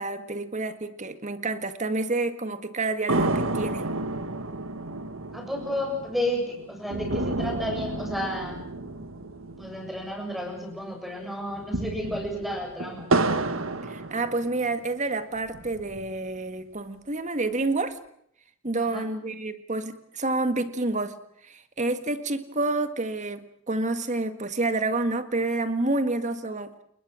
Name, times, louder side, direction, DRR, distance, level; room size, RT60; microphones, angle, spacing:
voice 1, 0.0-3.9 13.8-18.0 18.6-21.2 21.4-26.7, right 2 dB, 35° right, 10 dB, 1.7 m, -28 dB
sound 1, 3.1-10.7 10.9-11.0 11.5-14.8 15.4-16.4, right 2 dB, 70° right, 1.6 m, -31 dB
voice 2, 5.3-8.6 9.6-13.1 18.8-19.1, left 1 dB, ahead, 1 dB, 7.3 m, -32 dB
30.0 x 20.5 x 6.3 m, 0.70 s
head